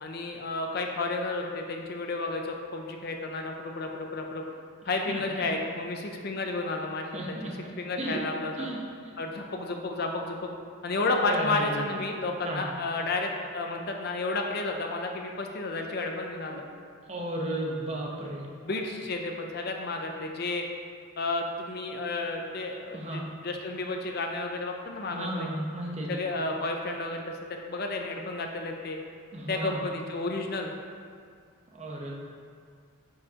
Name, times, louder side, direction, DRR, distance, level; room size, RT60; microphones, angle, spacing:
voice 1, 0.0-4.4 4.9-7.2 7.8-8.7 9.2-10.5 10.8-16.7 18.6-20.7 21.2-25.5 26.1-29.0 29.5-30.7, left 3 dB, 45° left, 3 dB, 0.5 m, -32 dB
voice 2, 5.1-5.4 7.1-7.5 8.0-8.2 8.6-8.8 11.3-11.9 12.4-12.7 17.1-18.4 22.9-23.2 25.1-26.2 29.3-29.9 31.7-32.1, right 1 dB, 30° right, -2 dB, 0.8 m, -34 dB
9.7 x 4.6 x 2.9 m, 2.1 s
head